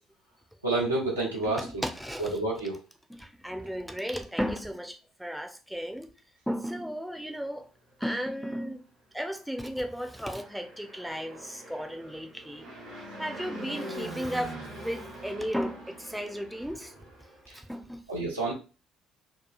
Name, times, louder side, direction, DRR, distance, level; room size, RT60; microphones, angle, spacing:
voice 1, 0.6-1.8 2.2-2.8 17.5-17.6 18.1-18.5, right 2 dB, 90° right, 0.6 m, -29 dB
voice 2, 1.4-2.3 3.2-6.1 6.5-7.7 8.0-8.8 9.1-12.7 13.2-16.9 17.5-18.0, equal, ahead, 0.5 m, -34 dB
Fixed-wing aircraft airplane, 10.0-17.4, right 1 dB, 75° right, 1.0 m, -43 dB
2.9 x 2.3 x 2.3 m
figure-of-eight pair, 50°, 0 cm